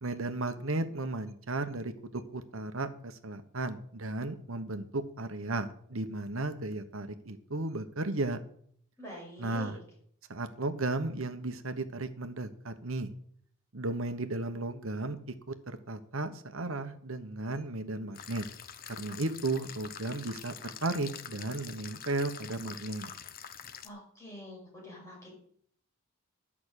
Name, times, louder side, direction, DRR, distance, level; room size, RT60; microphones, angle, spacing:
voice 1, 0.0-8.4 9.4-9.8 10.3-13.1 13.7-18.4 18.9-23.1, right 2 dB, 70° right, 10 dB, 1.1 m, -35 dB
voice 2, 9.0-9.8 23.8-25.3, left 1 dB, 15° left, -4 dB, 6.0 m, -46 dB
sound 1, 18.1-23.9, left 8 dB, 45° left, 0.8 m, -45 dB
11.0 x 6.1 x 8.3 m, 0.63 s
head